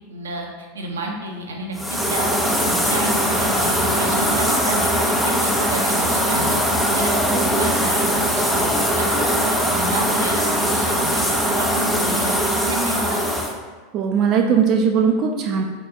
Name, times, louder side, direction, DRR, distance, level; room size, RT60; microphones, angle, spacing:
voice 1, 0.1-6.6 6.9-11.2 11.6-13.3, right 2 dB, 85° right, 1 dB, 0.7 m, -31 dB
sound 1, 1.8-13.5, equal, 5° left, 0.7 m, -20 dB
voice 2, 13.9-15.6, right 6 dB, 45° right, 2 dB, 0.5 m, -19 dB
4.0 x 3.7 x 3.6 m, 1.4 s
hypercardioid pair, 95°, 0 cm